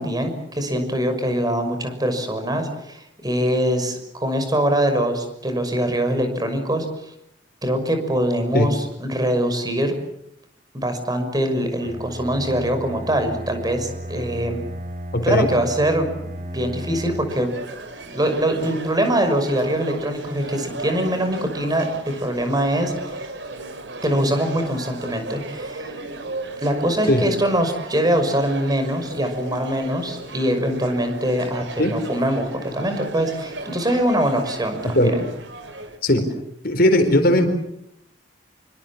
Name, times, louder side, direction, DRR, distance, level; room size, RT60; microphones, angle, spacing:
voice 1, 0.0-6.9 7.6-10.0 10.7-14.6 15.2-16.1 16.5-17.5 18.1-23.3 24.0-26.0 26.6-35.1, right 1 dB, 20° right, 7 dB, 6.0 m, -23 dB
Bowed string instrument, 11.8-17.5, equal, 50° right, 3.8 m, -34 dB
voice 2, 15.1-15.5 27.1-27.2 31.8-31.9 34.8-35.1 36.0-36.2 36.6-37.6, left 1 dB, 55° left, 7 dB, 4.5 m, -18 dB
sound 1, 17.3-36.0, right 2 dB, 75° right, 4.3 m, -36 dB
27.5 x 25.0 x 7.3 m, 0.77 s
head